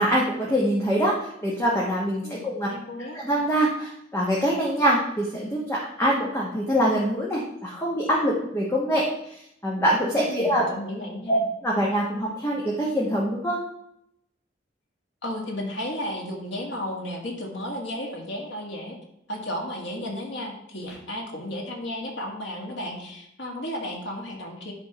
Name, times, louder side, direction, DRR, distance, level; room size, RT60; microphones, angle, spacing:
voice 1, 0.0-2.7 3.1-10.6 11.3-13.6, equal, 15° left, -4 dB, 1.1 m, -24 dB
voice 2, 2.2-3.2 10.3-11.4 15.2-19.0 19.3-24.7, left 1 dB, 85° left, 0 dB, 2.0 m, -33 dB
9.7 x 3.6 x 5.8 m, 0.76 s
head